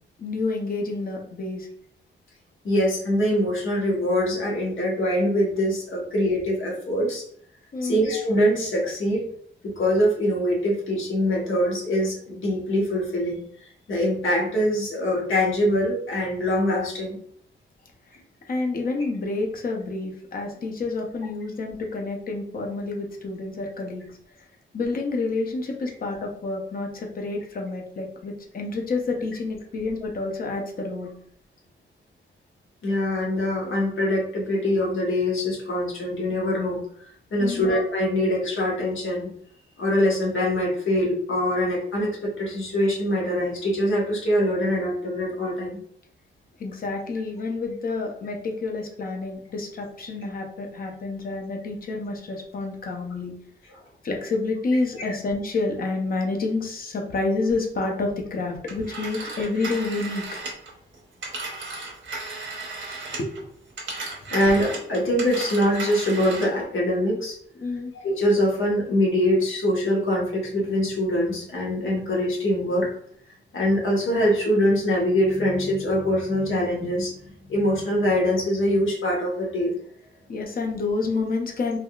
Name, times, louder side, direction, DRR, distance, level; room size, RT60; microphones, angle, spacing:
voice 1, 0.2-1.7 7.7-8.0 18.5-24.0 24.7-31.1 37.4-37.7 46.6-53.3 54.0-60.2 63.2-63.5 67.6-67.9 80.3-81.8, left 3 dB, 45° left, 1 dB, 0.6 m, -29 dB
voice 2, 2.6-7.2 7.8-9.3 9.6-13.4 13.9-17.2 32.8-36.8 37.3-39.3 39.8-45.8 55.0-55.1 64.3-67.3 68.0-72.9 73.5-77.1 77.5-79.7, equal, 90° left, -3 dB, 1.1 m, -23 dB
Telephone, 58.7-63.4 63.7-66.6, right 3 dB, 75° right, 0.9 m, -35 dB
3.4 x 2.4 x 2.3 m, 0.63 s
wide cardioid pair, 160°, 20 cm